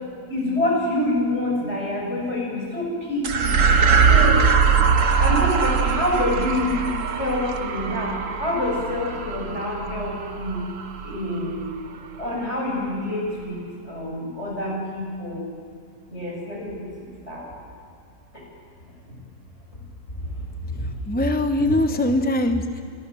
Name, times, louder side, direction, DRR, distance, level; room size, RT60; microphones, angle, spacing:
voice 1, 0.3-3.6 4.1-4.4 5.2-6.9 7.2-10.6 11.0-11.6 12.2-13.6 13.9-15.4 16.1-16.7 17.3-17.5 21.6-21.7, left 1 dB, 50° left, -2 dB, 7.8 m, -26 dB
sound 1, 3.2-11.9, right 5 dB, 65° right, 1.6 m, -21 dB
voice 2, 21.1-22.8, left 1 dB, 10° left, 6 dB, 0.9 m, -22 dB
29.0 x 25.0 x 7.0 m, 2.2 s
omnidirectional pair, 1.5 m